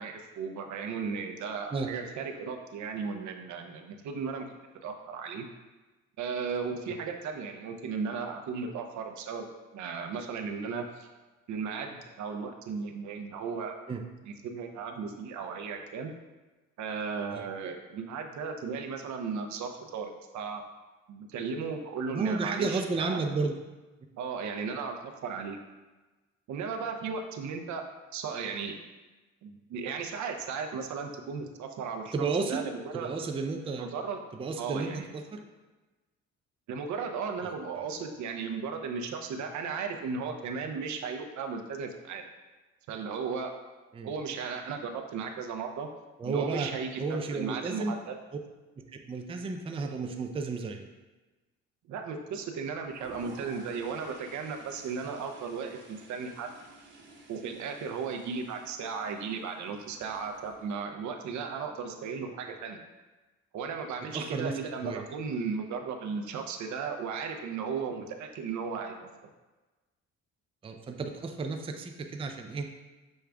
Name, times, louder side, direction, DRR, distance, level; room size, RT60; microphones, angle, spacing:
voice 1, 0.0-4.4 4.8-5.5 6.2-9.5 9.7-11.1 11.5-13.7 14.3-16.1 16.8-20.6 21.1-23.2 24.2-25.0 25.2-25.6 26.5-27.8 28.1-28.8 29.4-32.1 32.4-33.1 33.8-34.2 34.6-35.1 36.7-42.2 42.9-43.5 44.0-45.9 46.2-47.0 47.3-48.2 51.9-56.5 57.3-62.8 63.5-68.9, right 5 dB, 70° right, 4 dB, 0.6 m, -35 dB
voice 2, 22.1-23.5 32.1-32.6 32.9-33.9 34.3-35.4 43.9-44.1 46.2-46.7 47.0-47.9 49.1-50.9 64.1-64.5 64.8-65.0 70.6-72.7, right 4 dB, 20° right, 4 dB, 0.4 m, -32 dB
Toilet flush, 52.8-60.7, right 2 dB, 40° right, 0.9 m, -52 dB
6.3 x 2.3 x 3.4 m, 1.2 s
cardioid pair, 90°, 30 cm